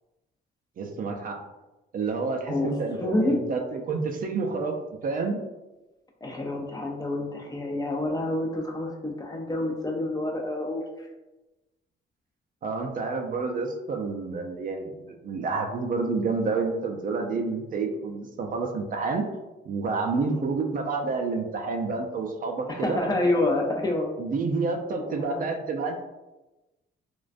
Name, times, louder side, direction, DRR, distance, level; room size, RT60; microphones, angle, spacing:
voice 1, 0.8-1.4 1.9-4.8 5.0-5.4 12.6-19.2 19.7-23.0 24.2-26.0, right 4 dB, 45° right, 2 dB, 0.4 m, -29 dB
voice 2, 2.5-3.4 6.2-11.1 20.2-20.4 22.7-24.1 24.9-25.5, left 2 dB, 20° left, 0 dB, 0.4 m, -28 dB
2.4 x 2.2 x 2.4 m, 1.1 s
cardioid pair, 90°, 20 cm